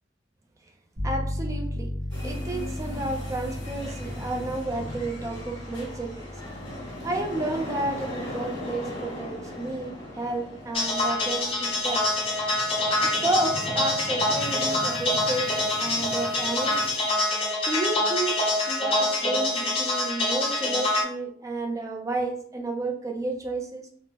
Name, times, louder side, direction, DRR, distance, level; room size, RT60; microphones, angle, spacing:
voice 1, 1.0-1.9 2.2-6.3 6.8-12.1 13.0-15.5 15.8-16.8 17.7-18.4 18.7-23.9, right 2 dB, 15° right, 2 dB, 0.4 m, -31 dB
sound 1, 1.0-11.5, left 1 dB, 65° right, 1.2 m, -37 dB
sound 2, 2.1-17.0, left 1 dB, 70° left, 1.1 m, -39 dB
sound 3, 10.7-21.0, left 2 dB, 30° left, 0.6 m, -25 dB
3.4 x 2.0 x 2.8 m, 0.62 s
head